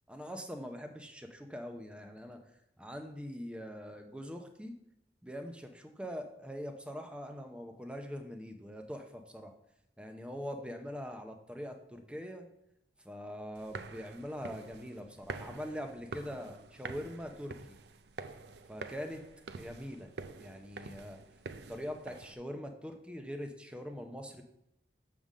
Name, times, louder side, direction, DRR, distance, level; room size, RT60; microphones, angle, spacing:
voice 1, 0.1-2.4 2.8-4.7 5.2-9.5 10.0-12.5 13.0-17.8 18.7-19.2 19.6-20.1 20.4-21.2 21.7-24.4, equal, 5° right, 5 dB, 0.6 m, -43 dB
sound 1, 13.6-22.3, right 4 dB, 65° right, 0.5 m, -47 dB
6.9 x 3.7 x 6.2 m, 0.80 s
head